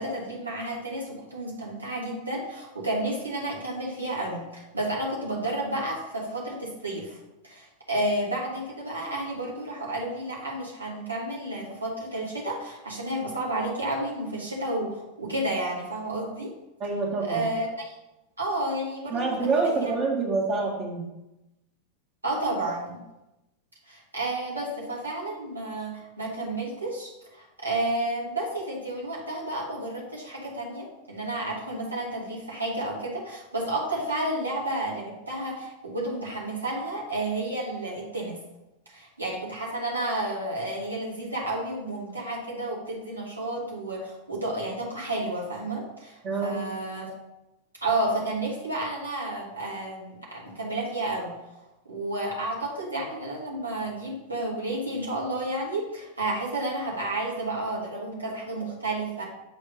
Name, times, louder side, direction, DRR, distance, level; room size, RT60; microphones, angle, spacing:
voice 1, 0.0-7.2 7.4-16.5 17.3-17.9 18.4-19.9 22.2-23.0 23.9-38.4 38.8-47.1 47.8-51.3 51.9-59.2, right 1 dB, 80° right, -4 dB, 1.6 m, -31 dB
voice 2, 16.8-17.4 19.1-21.1 46.2-46.6, right 3 dB, 35° right, -2 dB, 1.8 m, -26 dB
7.6 x 3.5 x 5.2 m, 0.96 s
figure-of-eight pair, 90°, 0 cm